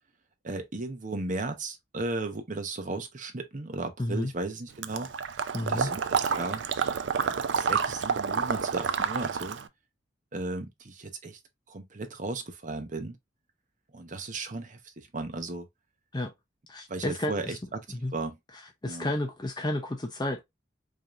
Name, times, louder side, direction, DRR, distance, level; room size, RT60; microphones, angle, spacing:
voice 1, 0.4-5.1 5.6-6.6 7.1-9.6 10.3-11.4 11.7-13.2 13.9-15.7 16.9-17.8 18.1-18.4 18.8-19.1, right 2 dB, 45° right, 0.9 m, -35 dB
voice 2, 4.0-4.3 5.5-5.9 16.1-16.3 16.7-17.6 18.0-18.1 18.8-20.4, left 1 dB, 25° left, 0.6 m, -31 dB
Water / Liquid, 4.8-9.7, right 6 dB, 75° right, 0.4 m, -29 dB
5.0 x 2.9 x 2.5 m
head